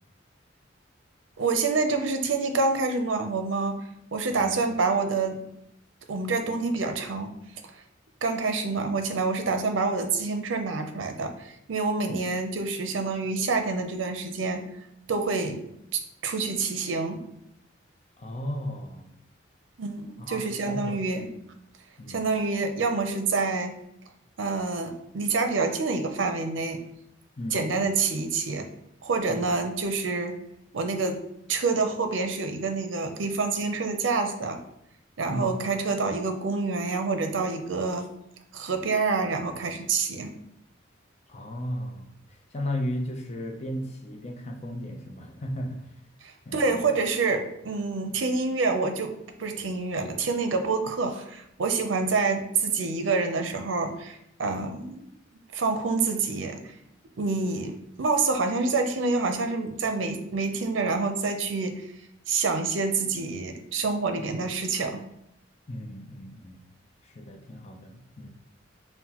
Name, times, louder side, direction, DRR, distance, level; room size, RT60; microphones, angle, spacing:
voice 1, 1.4-3.7 4.1-5.4 6.1-7.3 8.2-14.6 15.1-15.6 15.9-17.2 19.8-21.3 22.1-23.7 24.4-26.8 27.5-28.7 29.0-30.4 30.7-31.2 31.5-34.6 35.2-38.1 38.5-40.3 46.2-49.1 49.4-55.0 55.5-56.6 57.2-61.8 62.3-65.0, right 4 dB, 75° right, 5 dB, 0.5 m, -27 dB
voice 2, 18.2-19.1 20.2-21.1 22.0-22.3 27.4-28.0 29.3-29.6 35.3-35.6 41.3-45.9 46.5-47.0 65.7-66.6 67.0-68.3, equal, 35° left, 3 dB, 0.5 m, -35 dB
5.7 x 2.2 x 2.9 m, 0.78 s
head